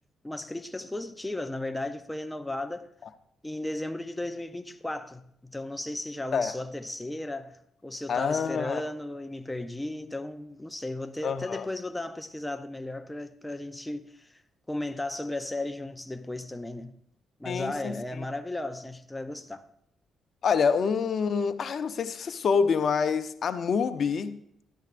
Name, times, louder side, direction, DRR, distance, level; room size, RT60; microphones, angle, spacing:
voice 1, 0.2-2.9 3.4-14.4 14.7-16.9 17.4-19.7, left 2 dB, 10° left, 0.6 m, -35 dB
voice 2, 8.1-8.8 11.2-11.7 17.4-17.9 20.4-24.4, left 6 dB, 55° left, 0.6 m, -26 dB
14.0 x 12.0 x 2.5 m
cardioid pair, 90°, 0 cm